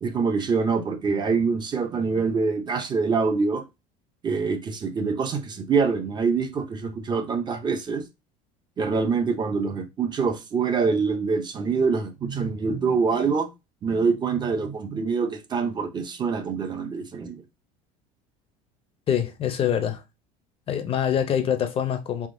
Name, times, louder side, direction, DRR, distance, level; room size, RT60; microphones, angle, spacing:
voice 1, 0.0-3.6 4.2-8.0 8.8-13.5 13.8-17.4, right 5 dB, 25° right, 0.5 m, -25 dB
voice 2, 19.1-20.0 20.7-22.3, left 9 dB, 35° left, 0.5 m, -25 dB
3.5 x 2.8 x 2.6 m
cardioid pair, 130°, 17 cm